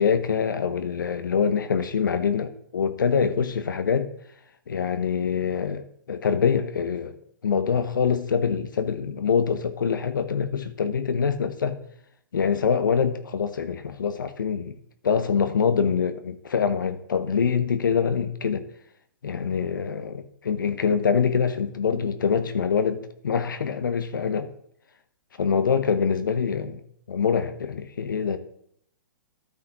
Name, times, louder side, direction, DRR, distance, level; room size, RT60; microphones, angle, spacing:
voice 1, 0.0-4.1 4.7-7.2 7.4-11.8 12.3-14.7 15.0-18.6 19.2-24.5 25.4-26.8 27.1-28.4, left 6 dB, 75° left, 0.8 m, -24 dB
13.0 x 5.6 x 2.9 m
hypercardioid pair, 120°, 11 cm